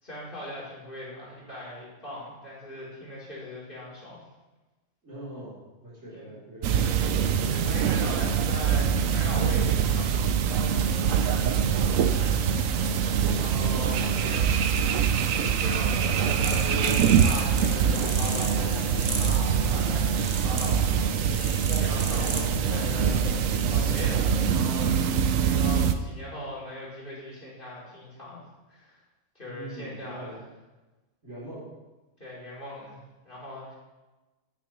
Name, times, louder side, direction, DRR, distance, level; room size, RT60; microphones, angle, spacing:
voice 1, 0.0-4.2 6.1-6.3 7.5-10.6 13.4-15.0 15.3-18.8 19.2-28.4 28.7-29.0 29.4-30.4 32.2-33.7, left 1 dB, 40° left, -6 dB, 3.5 m, -40 dB
voice 2, 5.0-7.6 11.3-11.7 13.1-13.5 29.4-30.4 31.2-31.7, right 1 dB, 60° right, -8 dB, 3.9 m, -43 dB
sound 1, 6.6-25.9, right 7 dB, 85° right, 1.0 m, -24 dB
sound 2, 9.2-24.5, left 2 dB, 80° left, 2.1 m, -40 dB
sound 3, 16.4-22.5, right 3 dB, 35° right, 1.0 m, -36 dB
10.0 x 9.5 x 3.1 m, 1.1 s
omnidirectional pair, 1.4 m